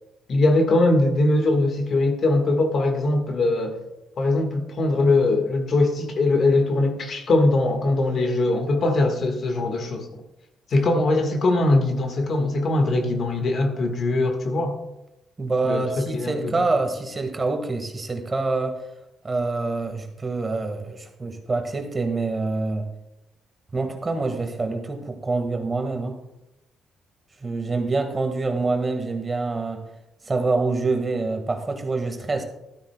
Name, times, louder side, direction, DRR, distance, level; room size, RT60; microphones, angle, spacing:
voice 1, 0.3-3.8 4.2-10.1 10.7-14.8 15.6-16.7, left 2 dB, 55° left, 5 dB, 1.5 m, -21 dB
voice 2, 15.4-18.8 19.2-22.9 23.7-26.2 27.4-29.8 30.2-32.4, right 3 dB, 25° right, 5 dB, 1.6 m, -26 dB
12.5 x 12.5 x 2.2 m, 0.91 s
cardioid pair, 90°, 0 cm